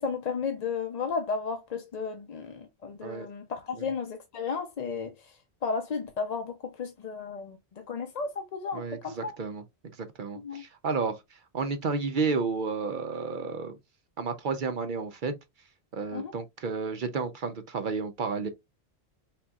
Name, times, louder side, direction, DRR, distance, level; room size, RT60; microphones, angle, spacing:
voice 1, 0.0-5.1 5.6-9.4 10.3-10.6 16.1-16.3, left 5 dB, 50° left, 0.5 m, -33 dB
voice 2, 8.7-9.6 10.0-13.8 14.2-15.3 15.9-18.5, right 4 dB, 55° right, 0.7 m, -31 dB
4.2 x 3.7 x 2.3 m
omnidirectional pair, 1.1 m